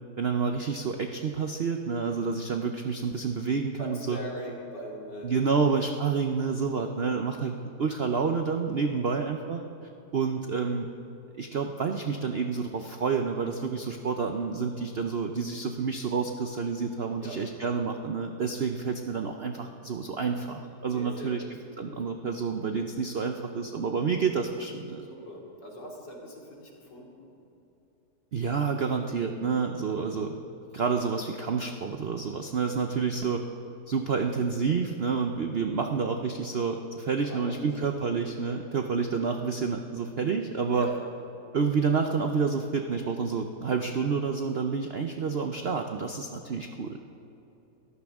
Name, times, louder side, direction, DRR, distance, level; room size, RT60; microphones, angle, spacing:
voice 1, 0.2-4.2 5.2-9.6 10.1-10.9 11.4-21.4 21.8-25.1 28.3-30.3 30.7-33.4 33.9-40.9 41.5-47.0, right 5 dB, 75° right, 5 dB, 0.5 m, -29 dB
voice 2, 3.8-5.7 17.1-17.4 20.9-21.5 25.0-27.3 37.2-37.8 40.6-41.1, equal, 70° left, -2 dB, 3.3 m, -41 dB
22.5 x 14.0 x 3.6 m, 2.9 s
omnidirectional pair, 2.0 m